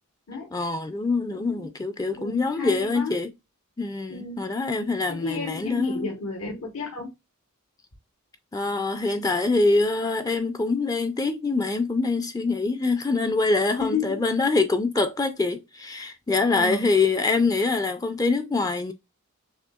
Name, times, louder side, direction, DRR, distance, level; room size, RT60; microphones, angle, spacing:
voice 1, 0.5-3.3 3.8-6.1 8.5-18.9, left 3 dB, 15° left, 0.4 m, -24 dB
voice 2, 1.3-1.7 2.2-3.1 4.1-4.5 5.1-7.1 13.8-14.2 16.5-16.9, left 4 dB, 75° left, 1.2 m, -32 dB
6.4 x 2.7 x 2.3 m
head